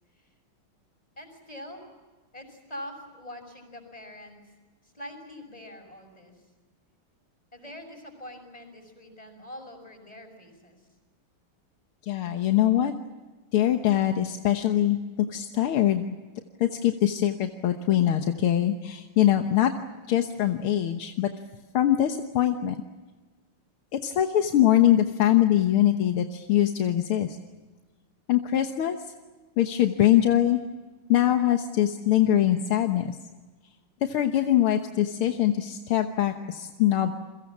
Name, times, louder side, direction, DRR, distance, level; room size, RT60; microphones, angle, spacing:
voice 1, 1.2-1.8 2.3-4.4 4.8-6.3 7.5-10.8, left 1 dB, 15° left, 5 dB, 6.3 m, -44 dB
voice 2, 12.1-12.9 13.5-15.0 15.3-16.1 16.6-19.7 20.1-21.3 21.7-22.8 23.9-27.4 28.3-29.0 29.6-30.6 31.1-33.2 34.0-37.1, left 12 dB, 80° left, 5 dB, 2.1 m, -23 dB
29.5 x 23.0 x 7.3 m, 1.3 s
omnidirectional pair, 2.3 m